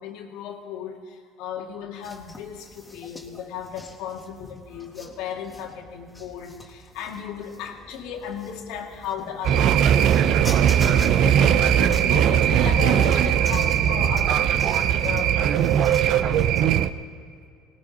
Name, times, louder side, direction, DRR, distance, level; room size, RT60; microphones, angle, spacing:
voice 1, 0.0-16.5, left 7 dB, 75° left, 3 dB, 1.9 m, -36 dB
sound 1, 2.0-16.8, left 1 dB, 15° left, 2.0 m, -44 dB
sound 2, 9.4-16.9, right 9 dB, 60° right, 0.6 m, -19 dB
19.5 x 18.0 x 4.1 m, 2.3 s
supercardioid pair, 85°, 0 cm